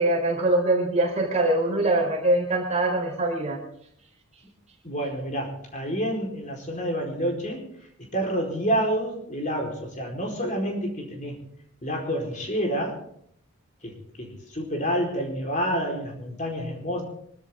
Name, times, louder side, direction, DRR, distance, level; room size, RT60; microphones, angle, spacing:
voice 1, 0.0-3.6, right 2 dB, 30° right, -1 dB, 4.4 m, -23 dB
voice 2, 4.8-7.6 8.0-11.4 11.8-13.0 13.8-17.0, equal, 35° left, 0 dB, 4.5 m, -28 dB
25.0 x 13.0 x 3.8 m, 0.67 s
head